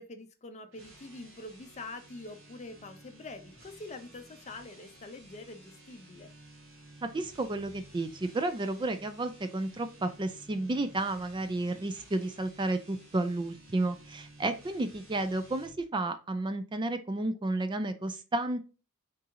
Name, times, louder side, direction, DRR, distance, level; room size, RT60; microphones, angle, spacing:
voice 1, 0.0-6.3, left 2 dB, 35° left, 7 dB, 0.6 m, -45 dB
sound 1, 0.7-15.8, right 1 dB, 85° right, 1.7 m, -54 dB
voice 2, 7.0-18.7, right 2 dB, 20° right, 9 dB, 0.4 m, -32 dB
4.0 x 3.7 x 2.7 m, 0.34 s
head